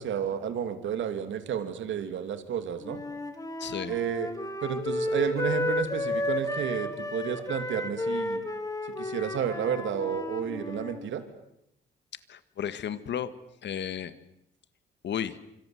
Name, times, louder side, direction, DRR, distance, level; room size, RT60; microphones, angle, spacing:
voice 1, 0.0-3.0 3.9-4.3 4.6-8.4 9.0-11.2, right 8 dB, 70° right, 9 dB, 2.7 m, -31 dB
Wind instrument woodwind instrument, 2.8-11.0, left 1 dB, 15° left, 3.7 m, -32 dB
voice 2, 3.6-4.0 12.3-13.3 13.6-14.1 15.0-15.4, left 9 dB, 65° left, 13 dB, 1.8 m, -33 dB
26.5 x 25.5 x 7.8 m, 0.79 s
cardioid pair, 90°, 20 cm